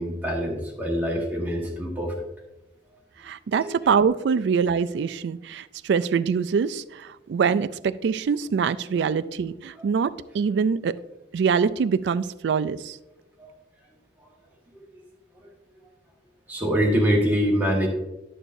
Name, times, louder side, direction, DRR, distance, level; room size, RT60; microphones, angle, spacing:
voice 1, 0.0-2.1 3.6-3.7 9.0-9.1 9.8-9.9 13.4-13.5 14.7-14.8 15.4-15.5 16.5-17.9, equal, 10° right, 1.4 m, -25 dB
voice 2, 3.2-11.0 11.3-13.0, right 6 dB, 70° right, 0.3 m, -24 dB
11.0 x 6.5 x 2.6 m
head